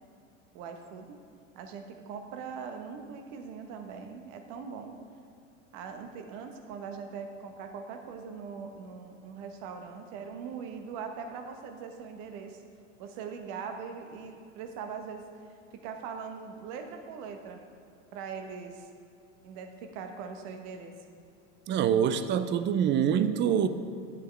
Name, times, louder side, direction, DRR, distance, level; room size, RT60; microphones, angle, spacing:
voice 1, 0.5-1.2 1.5-5.0 5.7-12.6 13.0-17.6 18.1-18.9 19.4-20.9, right 6 dB, 55° right, 5 dB, 1.2 m, -41 dB
voice 2, 21.7-23.7, right 8 dB, 30° right, 11 dB, 0.4 m, -25 dB
10.0 x 8.1 x 3.3 m, 2.4 s
hypercardioid pair, 90°, 40 cm